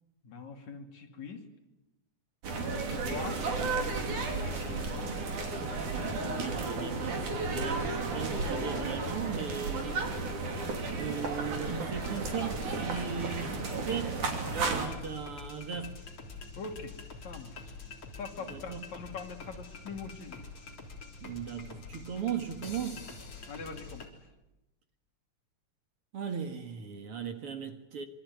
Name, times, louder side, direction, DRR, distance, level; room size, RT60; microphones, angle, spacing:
voice 1, 0.2-1.4 2.6-5.1 16.6-17.0 17.2-17.7 18.2-20.4 23.5-24.1, left 5 dB, 65° left, 4.0 m, -43 dB
sound 1, 2.4-14.9, right 3 dB, 90° right, 4.7 m, -33 dB
voice 2, 6.2-10.4 10.9-14.2 14.5-16.0 18.4-18.8 21.2-23.1 26.1-28.1, right 7 dB, 50° right, 2.3 m, -38 dB
sound 2, 12.0-24.1, left 4 dB, 45° left, 4.3 m, -46 dB
26.0 x 23.5 x 9.4 m
omnidirectional pair, 3.4 m